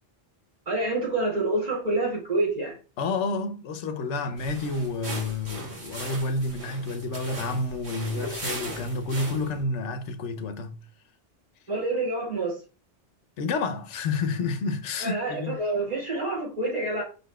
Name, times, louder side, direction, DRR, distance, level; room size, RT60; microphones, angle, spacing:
voice 1, 0.7-2.7 11.7-12.6 15.0-17.0, right 2 dB, 35° right, 2.5 m, -27 dB
voice 2, 3.0-10.8 13.4-15.6, left 3 dB, 80° left, 1.0 m, -29 dB
sound 1, 4.3-9.6, right 1 dB, 65° right, 1.8 m, -38 dB
5.3 x 4.0 x 2.2 m
omnidirectional pair, 1.2 m